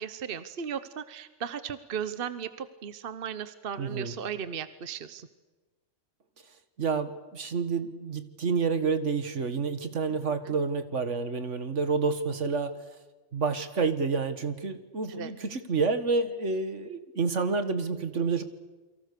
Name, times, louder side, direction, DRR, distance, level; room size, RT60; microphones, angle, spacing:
voice 1, 0.0-5.3 10.4-10.5 15.1-15.3, right 7 dB, 50° right, 13 dB, 1.1 m, -36 dB
voice 2, 3.8-4.1 6.8-12.8 13.3-18.4, right 4 dB, 75° right, 10 dB, 2.0 m, -29 dB
29.0 x 23.5 x 6.8 m, 1.2 s
omnidirectional pair, 1.3 m